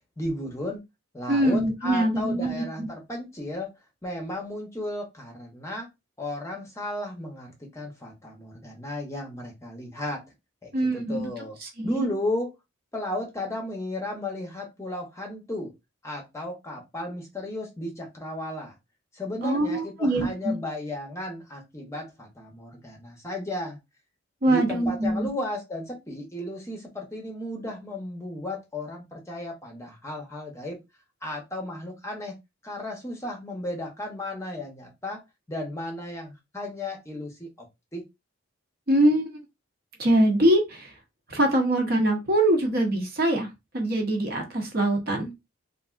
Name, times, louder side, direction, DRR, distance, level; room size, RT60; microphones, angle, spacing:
voice 1, 0.2-0.8 1.1-3.7 4.0-5.9 6.2-10.2 10.6-11.6 11.8-12.5 12.9-15.7 16.0-18.7 19.1-23.8 24.5-30.8 31.2-32.4 32.6-35.2 35.5-37.7 37.9-38.0, left 1 dB, 15° left, 1 dB, 0.7 m, -34 dB
voice 2, 1.3-2.9 10.7-11.3 11.6-12.0 19.4-20.6 24.4-25.3 38.9-39.3 40.0-40.9 41.3-43.5 43.7-45.3, right 1 dB, 45° right, 2 dB, 0.8 m, -23 dB
3.3 x 2.5 x 2.4 m, 0.22 s
head